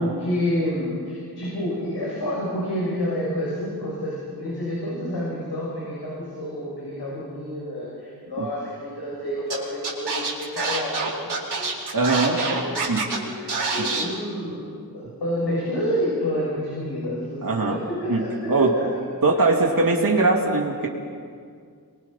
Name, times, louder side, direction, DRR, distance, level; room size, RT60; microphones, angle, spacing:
voice 1, 0.0-11.9 12.3-12.8 13.1-14.6 14.9-18.5 18.7-18.8 19.3-19.5, equal, 90° left, -5 dB, 7.3 m, -29 dB
Scratching (performance technique), 9.5-9.6 9.8-13.2 13.5-14.0, right 4 dB, 85° right, 4.6 m, -26 dB
voice 2, 11.9-12.4 12.9-13.1 13.8-13.9 17.4-17.8 18.1-18.8 19.2-20.9, right 3 dB, 60° right, -1 dB, 3.0 m, -21 dB
28.5 x 24.5 x 5.9 m, 2.2 s
wide cardioid pair, 80°, 39 cm